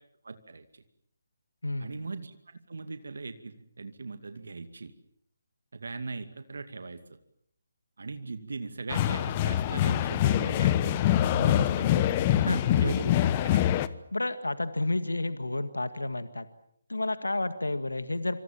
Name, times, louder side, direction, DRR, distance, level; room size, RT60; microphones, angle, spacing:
voice 1, 0.2-0.8 1.8-2.4 2.7-4.9 5.7-7.0 8.0-12.2 12.8-13.1 13.5-13.6, right 3 dB, 65° right, 9 dB, 2.3 m, -39 dB
voice 2, 1.6-2.0 12.3-13.3 14.1-16.5 16.9-18.4, left 2 dB, 85° left, 11 dB, 1.8 m, -31 dB
sound 1, 8.9-13.9, left 12 dB, 25° left, 1.1 m, -25 dB
27.5 x 26.5 x 7.4 m, 0.71 s
figure-of-eight pair, 150°, 0 cm